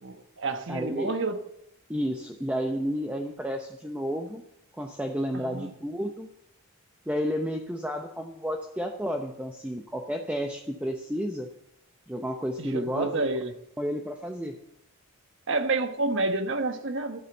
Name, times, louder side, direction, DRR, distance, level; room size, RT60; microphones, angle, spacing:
voice 1, 0.0-1.4 5.3-5.7 12.6-13.5 15.5-17.2, right 3 dB, 60° right, 1.2 m, -29 dB
voice 2, 0.7-1.1 1.9-4.4 4.8-6.3 7.1-11.5 12.1-13.3 13.8-14.6, equal, 5° right, 0.7 m, -31 dB
12.5 x 8.8 x 7.0 m
head